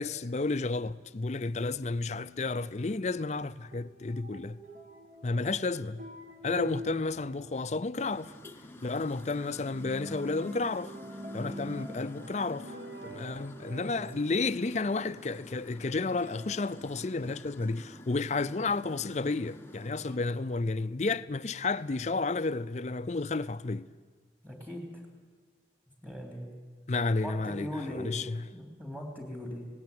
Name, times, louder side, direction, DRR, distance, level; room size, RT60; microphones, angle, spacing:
voice 1, 0.0-4.6 5.2-6.1 6.4-8.3 8.8-10.9 11.3-12.7 13.0-23.9 26.9-28.4, left 3 dB, 40° left, 0.5 m, -32 dB
sound 1, 1.5-15.6 16.2-17.3, equal, 45° right, 1.9 m, -47 dB
sound 2, 7.9-20.2, left 1 dB, 15° left, 0.9 m, -50 dB
voice 2, 11.3-11.7 13.8-14.1 24.4-25.0 26.0-26.6 27.2-28.2 28.5-29.7, left 1 dB, 10° right, 3.2 m, -40 dB
18.0 x 17.5 x 9.5 m
head